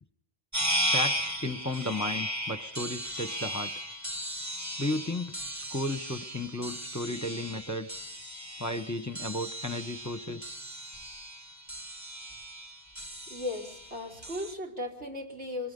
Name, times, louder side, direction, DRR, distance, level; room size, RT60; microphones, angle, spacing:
sound 1, 0.5-14.5, equal, 15° right, 1.3 m, -36 dB
voice 1, 0.9-3.7 4.8-8.0 8.6-10.6, left 1 dB, 15° left, 10 dB, 0.9 m, -34 dB
voice 2, 13.3-15.7, left 2 dB, 85° right, 0 dB, 3.9 m, -36 dB
24.0 x 22.5 x 5.3 m, 0.73 s
omnidirectional pair, 1.1 m